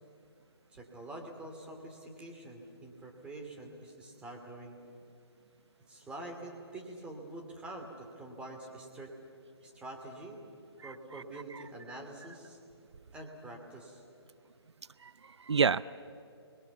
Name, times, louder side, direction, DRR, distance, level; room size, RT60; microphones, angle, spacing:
voice 1, 0.7-4.8 5.9-9.1 9.6-10.4 10.8-12.6 13.1-14.0, right 2 dB, 10° right, 1 dB, 2.6 m, -46 dB
voice 2, 10.8-11.6 15.0-15.8, right 5 dB, 80° right, 18 dB, 0.5 m, -31 dB
28.5 x 21.5 x 7.1 m, 2.5 s
figure-of-eight pair, 150°, 14 cm